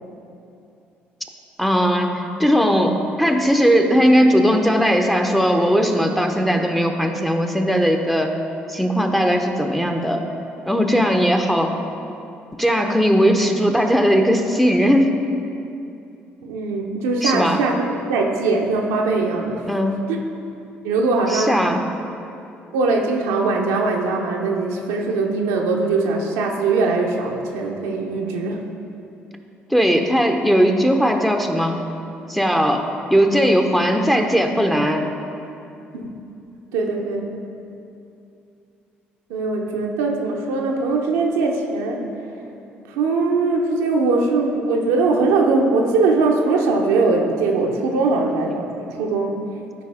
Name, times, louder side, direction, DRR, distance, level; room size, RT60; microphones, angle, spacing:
voice 1, 1.6-8.3 8.7-10.2 10.7-11.8 12.6-15.1 17.2-17.6 19.7-19.9 21.3-21.9 29.7-31.8 32.3-35.1, equal, ahead, 4 dB, 0.8 m, -18 dB
voice 2, 16.4-19.6 20.8-21.7 22.7-28.6 35.9-36.1 36.7-37.3 39.3-42.0 42.9-49.6, right 3 dB, 75° right, 0 dB, 0.8 m, -21 dB
12.5 x 4.8 x 3.5 m, 2.7 s
hypercardioid pair, 50°, 5 cm